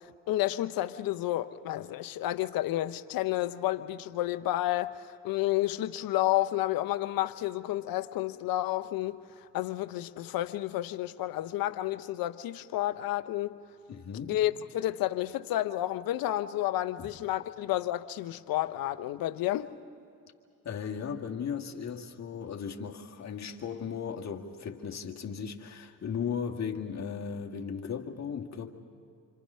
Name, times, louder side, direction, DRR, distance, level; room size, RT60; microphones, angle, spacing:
voice 1, 0.0-9.2 9.5-13.6 14.3-19.7, left 15 dB, 70° left, 0.9 m, -31 dB
voice 2, 13.9-14.4 17.0-17.1 20.6-28.7, left 7 dB, 45° left, 2.0 m, -36 dB
27.0 x 26.5 x 5.6 m
supercardioid pair, 60°, 37 cm